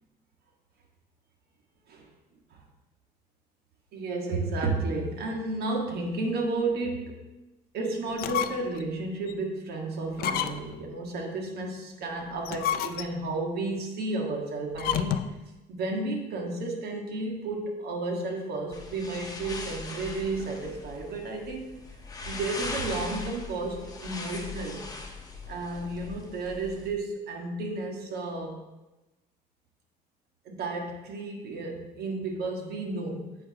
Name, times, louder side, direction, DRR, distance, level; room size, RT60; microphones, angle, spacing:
voice 1, 3.9-7.2 7.7-15.2 15.7-21.6 22.2-24.9 25.5-28.6 30.4-33.2, right 2 dB, 70° right, 0 dB, 1.6 m, -32 dB
sound 1, 8.1-8.8 9.3-9.4 10.1-10.8 12.3-13.3 14.7-15.4, left 10 dB, 65° left, 0.4 m, -30 dB
sound 2, 18.7-26.9, left 3 dB, 20° left, 1.0 m, -40 dB
8.5 x 6.0 x 2.9 m, 1.0 s
cardioid pair, 110°, 17 cm